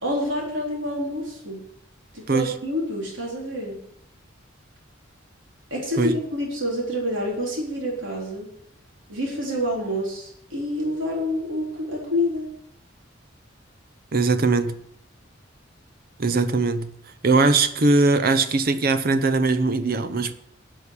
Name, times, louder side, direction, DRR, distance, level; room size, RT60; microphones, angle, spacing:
voice 1, 0.0-1.6 2.1-3.8 5.7-8.5 9.1-12.5, left 1 dB, 70° right, 3.8 m, -27 dB
voice 2, 14.1-14.8 16.2-16.9 17.2-20.3, right 3 dB, 50° right, 0.8 m, -20 dB
11.5 x 5.7 x 8.5 m
head